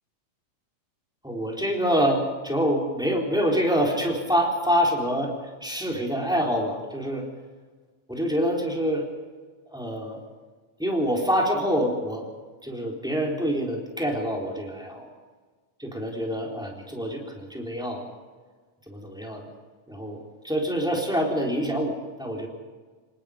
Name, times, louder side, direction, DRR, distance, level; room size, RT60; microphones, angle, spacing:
voice 1, 1.2-5.3 5.6-7.2 8.1-9.0 9.7-10.2 10.8-12.3 12.6-15.1 15.8-18.1 18.9-19.5 19.9-22.5, equal, ahead, -1 dB, 3.7 m, -26 dB
26.5 x 19.5 x 5.2 m, 1.4 s
omnidirectional pair, 3.8 m